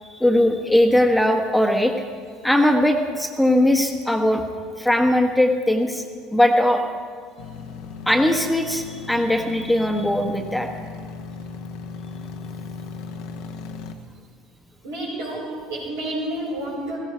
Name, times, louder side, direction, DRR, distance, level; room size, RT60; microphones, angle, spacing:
voice 1, 0.0-1.9 2.4-4.4 4.8-6.0 6.3-6.8 8.1-10.7, left 1 dB, 5° left, 4 dB, 1.3 m, -19 dB
sound 1, 7.4-14.0, left 5 dB, 65° left, 1.0 m, -36 dB
voice 2, 14.8-17.0, right 1 dB, 75° right, -5 dB, 5.0 m, -30 dB
16.0 x 15.5 x 4.6 m, 2.1 s
figure-of-eight pair, 65°, 0 cm